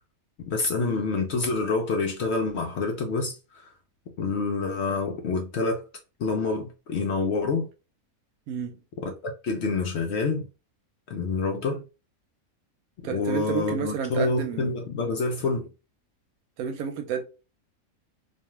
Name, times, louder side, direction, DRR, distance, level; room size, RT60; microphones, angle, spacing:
voice 1, 0.5-3.7 4.2-5.8 6.2-7.7 9.0-10.5 11.1-11.8 13.0-15.7, left 4 dB, 65° left, 0.7 m, -27 dB
voice 2, 8.5-8.8 13.0-14.8 16.6-17.2, right 7 dB, 80° right, 1.1 m, -30 dB
2.5 x 2.3 x 2.9 m
omnidirectional pair, 1.5 m